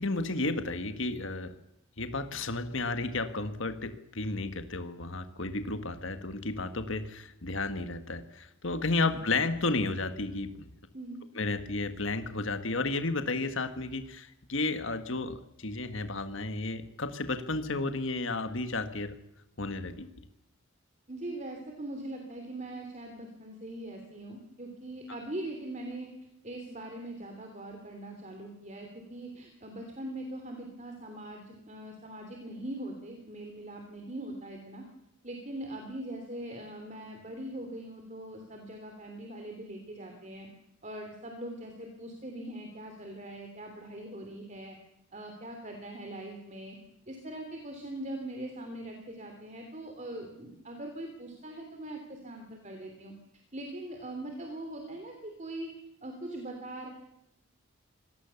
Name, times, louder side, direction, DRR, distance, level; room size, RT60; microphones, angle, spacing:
voice 1, 0.0-1.5 2.0-10.7 11.4-19.1 19.6-20.1, left 3 dB, 60° left, 9 dB, 1.7 m, -32 dB
voice 2, 10.9-11.2 21.1-26.1 26.4-34.9 35.2-40.5 40.8-44.8 45.1-46.8 47.1-53.1 53.5-55.7 56.0-56.9, right 1 dB, 35° right, 4 dB, 3.1 m, -41 dB
26.0 x 19.0 x 7.1 m, 0.86 s
head